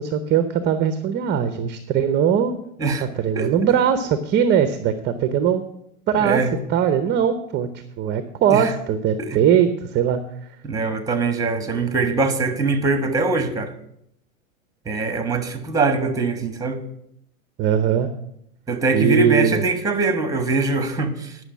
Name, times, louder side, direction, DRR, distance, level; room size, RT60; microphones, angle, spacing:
voice 1, 0.0-2.6 3.0-5.6 6.1-6.4 6.7-7.7 8.0-10.2 17.6-18.1 18.9-19.6, right 8 dB, 25° right, 0.7 m, -20 dB
voice 2, 6.2-6.5 8.5-8.7 9.2-9.4 10.6-13.7 14.8-16.8 18.7-21.4, right 3 dB, 10° right, 1.4 m, -22 dB
10.0 x 6.3 x 7.3 m
hypercardioid pair, 110°, 43 cm